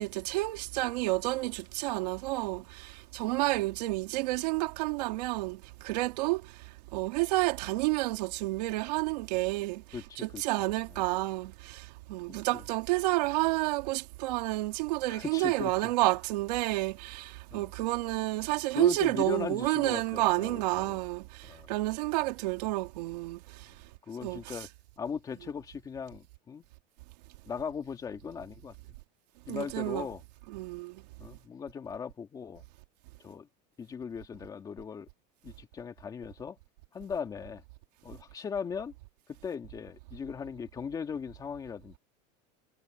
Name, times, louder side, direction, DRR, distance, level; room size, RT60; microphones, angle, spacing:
voice 1, 0.0-6.6 6.9-23.7 24.2-24.7 29.5-30.1 30.5-31.0, right 20 dB, 80° right, 2.7 m, -30 dB
voice 2, 9.9-10.4 12.3-12.4 15.1-15.7 17.5-17.7 18.7-21.0 21.4-21.7 24.1-24.7 25.0-26.6 27.5-28.7 29.5-30.2 31.2-32.6 33.2-33.5 33.8-35.1 35.4-36.6 36.9-37.6 38.0-38.9 39.4-42.0, left 6 dB, 15° left, 2.1 m, -38 dB
supercardioid pair, 170°, 21 cm